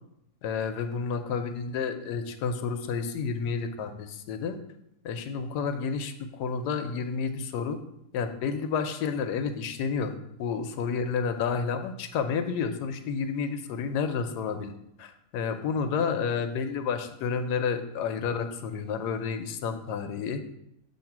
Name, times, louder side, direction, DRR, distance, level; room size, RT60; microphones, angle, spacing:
voice 1, 0.4-4.6 5.0-7.8 8.1-14.7 15.0-20.4, left 6 dB, 90° left, 8 dB, 1.2 m, -30 dB
7.2 x 2.7 x 5.8 m, 0.79 s
omnidirectional pair, 1.7 m